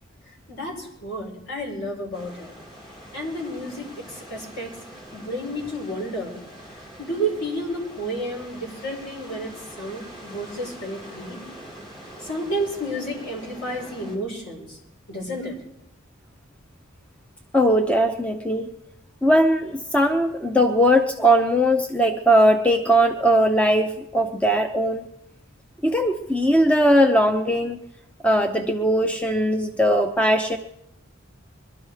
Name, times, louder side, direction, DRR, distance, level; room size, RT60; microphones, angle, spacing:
voice 1, 0.5-2.5 3.1-4.8 5.1-6.4 7.0-11.4 12.2-14.8 15.1-15.6, right 1 dB, 55° left, -1 dB, 5.5 m, -31 dB
sound 1, 2.1-14.2, right 1 dB, 25° left, 4.5 m, -44 dB
voice 2, 17.5-18.7 19.2-25.0 25.8-27.8 28.2-30.6, equal, 5° left, 5 dB, 0.6 m, -19 dB
22.5 x 12.5 x 4.9 m, 0.82 s
head